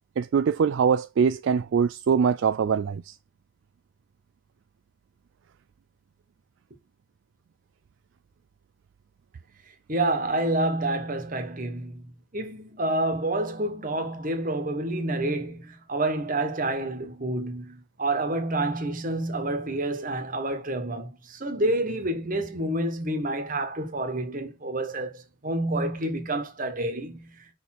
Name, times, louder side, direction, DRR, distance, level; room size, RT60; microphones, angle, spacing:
voice 1, 0.2-3.2, right 6 dB, 60° right, 0.3 m, -23 dB
voice 2, 9.9-12.0 12.3-27.3, right 2 dB, 40° right, 1.5 m, -28 dB
5.4 x 4.4 x 6.0 m
head